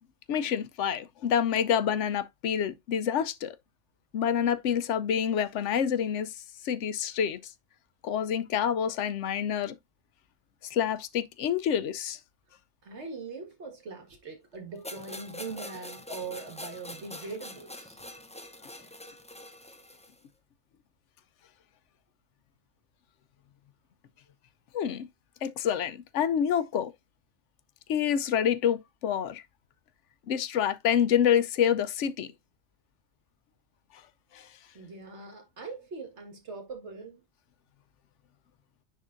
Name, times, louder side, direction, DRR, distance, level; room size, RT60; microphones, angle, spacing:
voice 1, 0.3-3.6 4.1-7.4 8.0-9.8 10.6-12.2 24.7-25.1 25.4-26.9 27.9-29.4 30.3-32.3 33.9-34.0 34.3-34.5, left 8 dB, 85° left, 1.0 m, -27 dB
voice 2, 12.8-18.1 34.7-37.2, right 4 dB, 70° right, 2.0 m, -41 dB
sound 1, 14.8-20.2, left 1 dB, 5° left, 0.6 m, -44 dB
10.0 x 3.7 x 2.5 m
omnidirectional pair, 1.2 m